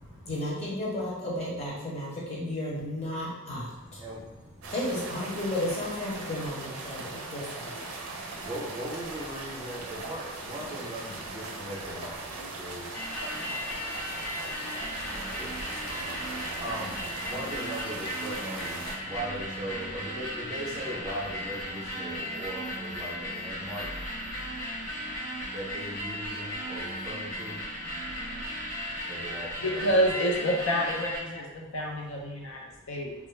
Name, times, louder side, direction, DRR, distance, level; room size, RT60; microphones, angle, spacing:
voice 1, 0.3-4.0 4.7-7.8, left 1 dB, 30° left, -6 dB, 0.7 m, -33 dB
voice 2, 3.7-4.7 6.9-7.3 7.9-29.9 32.7-32.9, right 1 dB, 20° right, -5 dB, 0.5 m, -41 dB
sound 1, 4.6-19.0, right 3 dB, 75° right, 0.4 m, -39 dB
sound 2, 12.9-31.2, equal, 90° left, 1.1 m, -36 dB
voice 3, 29.6-33.1, equal, 65° left, -1 dB, 0.5 m, -28 dB
2.3 x 2.0 x 3.1 m, 1.0 s
head